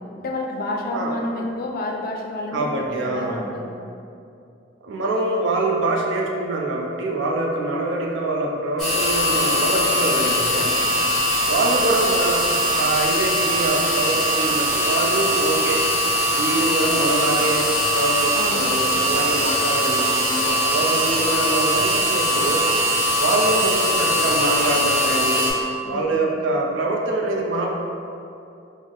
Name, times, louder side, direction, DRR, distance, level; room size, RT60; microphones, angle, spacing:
voice 1, 0.2-3.7 18.3-18.8 25.8-26.2, left 1 dB, 50° left, 0 dB, 0.4 m, -29 dB
voice 2, 2.5-3.4 4.8-10.8 11.5-15.9 16.3-22.7 23.2-25.4 25.9-27.7, right 2 dB, 80° right, -1 dB, 0.5 m, -24 dB
sound 1, 8.8-25.5, equal, 5° left, 0.8 m, -21 dB
3.5 x 2.0 x 3.7 m, 2.6 s
head